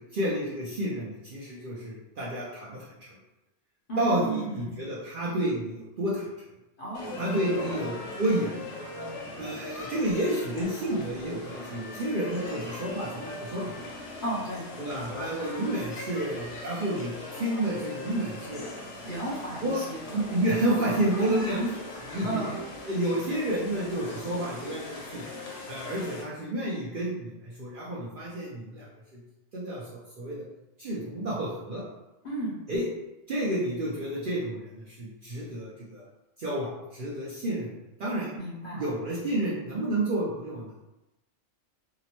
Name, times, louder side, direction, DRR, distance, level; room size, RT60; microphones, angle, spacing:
voice 1, 0.0-3.2 4.0-6.2 7.2-8.7 9.4-13.7 14.8-18.6 19.6-19.8 20.1-21.7 22.0-22.3 22.9-25.2 25.7-28.9 29.1-29.2 29.5-30.4 30.8-31.8 32.7-32.8 33.3-36.1 36.4-37.7 38.0-38.3 38.7-40.8, right 1 dB, 60° right, -7 dB, 0.6 m, -30 dB
voice 2, 3.9-4.8 6.8-7.8 14.2-14.7 19.0-20.2 21.3-21.4 22.2-22.6 32.2-32.6 38.3-38.9, right 2 dB, 55° left, -5 dB, 0.7 m, -34 dB
sound 1, 6.9-26.2, left 2 dB, 75° left, 1.0 m, -40 dB
2.8 x 2.0 x 2.8 m, 0.97 s
omnidirectional pair, 1.3 m